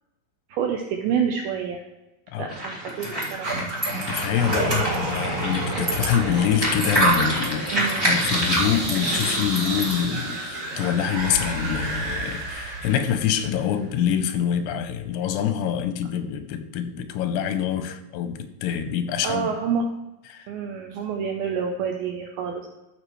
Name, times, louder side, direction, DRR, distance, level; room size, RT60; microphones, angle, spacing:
voice 1, 0.5-1.8 2.4-3.6 4.5-5.0 7.7-8.1 19.2-19.9 20.5-22.7, right 6 dB, 80° right, 2 dB, 2.4 m, -28 dB
sound 1, 2.5-10.0, right 1 dB, 15° right, 1.3 m, -26 dB
sound 2, 3.4-13.6, right 1 dB, 35° right, 2.8 m, -30 dB
voice 2, 4.1-7.7 8.0-19.5 20.3-20.5, left 9 dB, 90° left, 9 dB, 2.9 m, -25 dB
13.5 x 6.5 x 3.1 m, 1.0 s
omnidirectional pair, 4.8 m